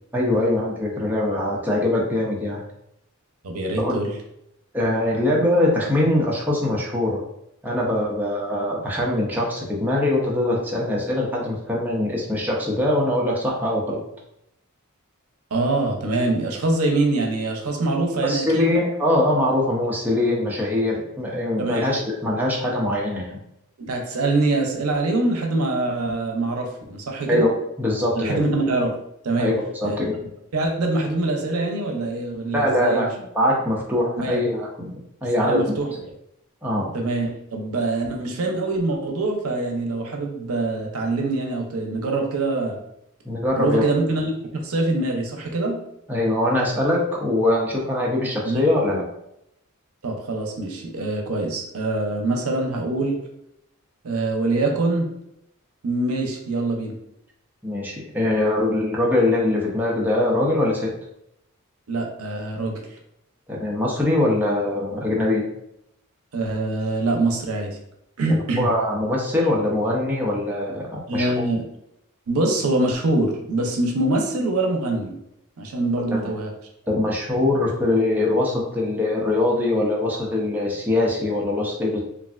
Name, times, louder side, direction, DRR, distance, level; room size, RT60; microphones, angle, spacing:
voice 1, 0.1-2.6 3.8-4.0 4.7-7.2 7.6-14.0 18.2-23.4 27.3-28.4 29.4-30.1 32.5-33.1 33.3-34.9 35.2-35.8 36.6-36.9 43.2-43.8 46.1-49.0 57.6-60.9 63.5-65.5 68.3-71.3 76.1-76.3 76.9-82.0, left 1 dB, 10° right, -4 dB, 0.5 m, -22 dB
voice 2, 3.4-4.1 15.5-18.7 21.6-21.9 23.8-27.5 28.1-29.0 29.2-29.6 29.8-30.0 30.5-33.1 34.2-34.5 35.4-35.9 36.9-42.8 43.5-44.3 44.6-45.8 48.4-48.6 50.0-53.2 54.0-55.1 55.8-57.0 61.9-62.8 66.3-67.8 68.2-68.7 71.1-71.6 72.3-75.1 75.6-76.5, right 2 dB, 80° right, 2 dB, 0.6 m, -24 dB
3.2 x 2.5 x 2.4 m, 0.80 s
head